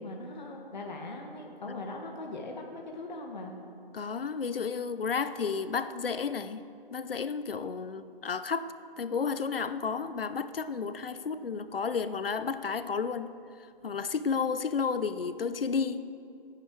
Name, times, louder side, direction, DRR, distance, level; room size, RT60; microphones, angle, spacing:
voice 1, 0.0-3.6, left 2 dB, 50° left, 1 dB, 1.5 m, -40 dB
voice 2, 3.9-6.6 6.9-13.3 13.8-16.0, left 5 dB, 70° left, 12 dB, 0.8 m, -32 dB
18.0 x 9.9 x 4.7 m, 2.5 s
hypercardioid pair, 170°, 29 cm